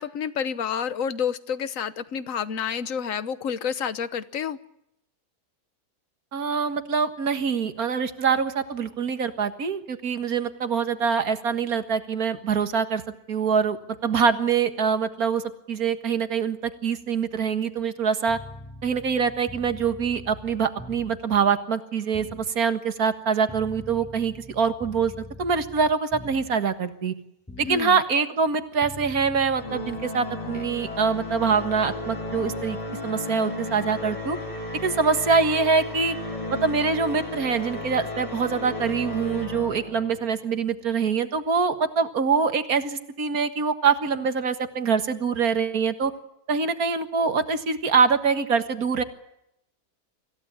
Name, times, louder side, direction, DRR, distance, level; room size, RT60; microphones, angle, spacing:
voice 1, 0.0-4.6 27.6-28.0, left 7 dB, 55° left, 14 dB, 1.4 m, -29 dB
voice 2, 6.3-13.0 13.3-13.8 14.0-18.4 18.8-25.1 25.4-27.1 27.6-32.8 33.0-34.4 34.8-36.2 36.5-46.1 46.5-49.0, right 5 dB, 65° right, 10 dB, 2.1 m, -24 dB
sound 1, 18.3-21.3 22.1-22.5 23.5-26.7 27.5-27.9 28.8-30.0, left 1 dB, 5° left, 2.2 m, -43 dB
Organ, 29.6-40.4, left 3 dB, 30° left, 0.9 m, -35 dB
sound 2, 29.9-39.5, right 1 dB, 20° right, 2.2 m, -39 dB
25.5 x 16.0 x 9.9 m, 0.80 s
omnidirectional pair, 1.7 m